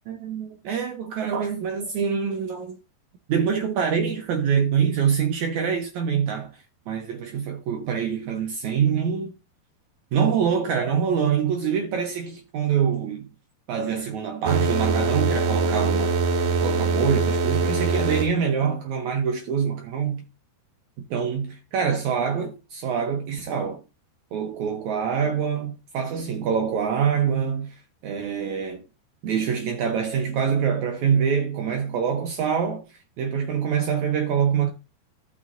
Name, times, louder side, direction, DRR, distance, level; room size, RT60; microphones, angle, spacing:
voice 1, 0.1-2.7 3.3-9.3 10.1-13.3 13.7-20.2 21.1-23.8 24.3-28.8 29.2-34.7, right 7 dB, 85° right, 1.6 m, -25 dB
sound 1, 14.5-18.3, right 4 dB, 65° right, 2.1 m, -23 dB
14.0 x 6.1 x 2.5 m
omnidirectional pair, 4.6 m